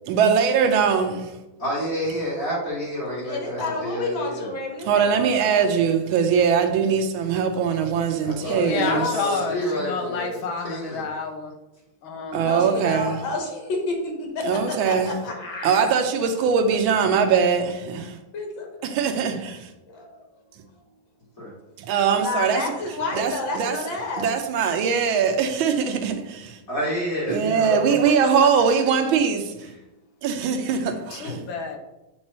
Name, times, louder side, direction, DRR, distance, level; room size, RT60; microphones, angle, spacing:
voice 1, 0.1-1.3 4.9-9.1 12.3-13.2 14.4-15.1 15.6-18.2 18.8-19.7 21.8-22.6 23.1-23.8 24.2-26.6 27.3-29.7 30.2-31.5, right 6 dB, 85° right, 1.5 m, -21 dB
voice 2, 1.6-4.5 8.1-11.0 21.4-21.5 26.7-27.9, equal, 45° left, 2.7 m, -29 dB
voice 3, 3.2-5.7 8.4-9.6 9.9-10.1 12.3-16.0 18.3-18.7 19.9-20.3 22.1-24.3 27.7-27.8, left 3 dB, 70° left, 2.0 m, -31 dB
voice 4, 8.6-11.5 12.0-12.5 31.1-31.8, left 4 dB, 85° left, 1.8 m, -29 dB
7.4 x 3.1 x 4.2 m
omnidirectional pair, 2.2 m